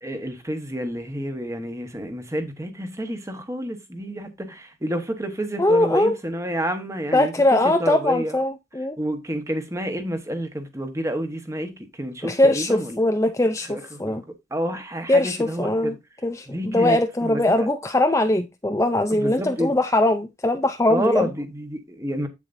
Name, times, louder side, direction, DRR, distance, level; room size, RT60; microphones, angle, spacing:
voice 1, 0.0-8.4 9.0-13.0 13.6-14.2 14.5-16.0 16.5-17.7 19.1-19.8 20.9-22.3, equal, 15° right, 1.2 m, -29 dB
voice 2, 5.6-6.1 7.1-9.0 12.2-14.2 15.1-15.9 16.2-21.3, left 1 dB, 15° left, 0.5 m, -21 dB
8.3 x 7.1 x 2.6 m
head